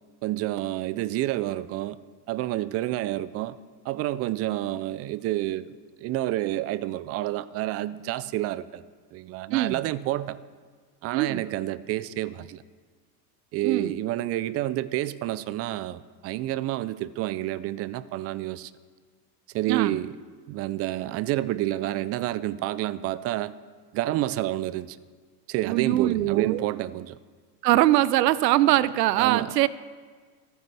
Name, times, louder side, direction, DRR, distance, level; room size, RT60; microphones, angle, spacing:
voice 1, 0.2-2.0 2.3-3.6 3.8-5.7 6.0-8.8 9.1-10.4 11.0-12.6 13.5-18.7 19.5-20.1 20.5-23.5 23.9-25.0 25.5-27.2 29.2-29.7, right 15 dB, 30° right, 0.4 m, -29 dB
voice 2, 11.1-11.4 13.6-14.0 19.7-20.0 25.7-26.6 27.6-29.7, right 15 dB, 85° right, 0.6 m, -22 dB
26.0 x 9.3 x 3.4 m
hypercardioid pair, 105°, 48 cm